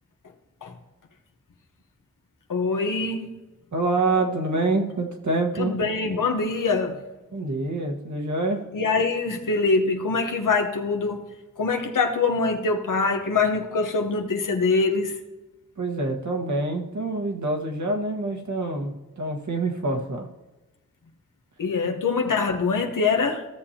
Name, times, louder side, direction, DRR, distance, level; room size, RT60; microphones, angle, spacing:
voice 1, 2.5-3.4 5.6-7.0 8.7-11.2 11.6-15.1 21.6-23.4, left 4 dB, 80° left, 3 dB, 1.0 m, -24 dB
voice 2, 3.7-5.8 7.3-8.6 15.8-20.3 21.8-22.0, right 2 dB, 65° right, 1 dB, 1.4 m, -26 dB
15.5 x 7.0 x 2.8 m, 1.1 s
wide cardioid pair, 105°, 31 cm